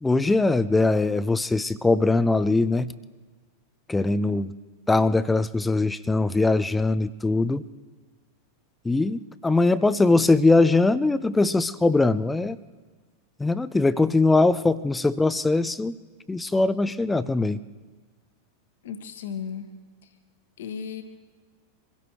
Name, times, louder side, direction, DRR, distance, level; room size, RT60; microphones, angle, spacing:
voice 1, 0.0-2.9 3.9-4.5 4.9-7.6 8.8-12.6 13.4-15.9 16.3-17.6, left 3 dB, 10° left, 16 dB, 0.5 m, -21 dB
voice 2, 18.8-19.7 20.6-21.0, left 7 dB, 60° left, 8 dB, 1.5 m, -34 dB
26.0 x 16.5 x 3.2 m, 1.4 s
figure-of-eight pair, 90°, 0 cm